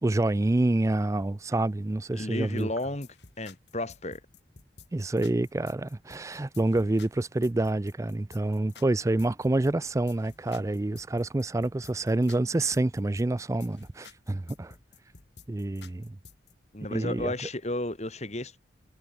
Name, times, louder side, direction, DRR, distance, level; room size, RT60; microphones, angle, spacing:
voice 1, 0.0-2.7 4.9-14.7 15.5-16.2 16.9-17.3, right 2 dB, 15° right, 0.4 m, -27 dB
voice 2, 2.1-3.1 3.4-4.2 16.7-18.6, left 1 dB, 40° left, 3.0 m, -33 dB
sound 1, 2.6-16.5, left 5 dB, 70° left, 2.8 m, -52 dB
head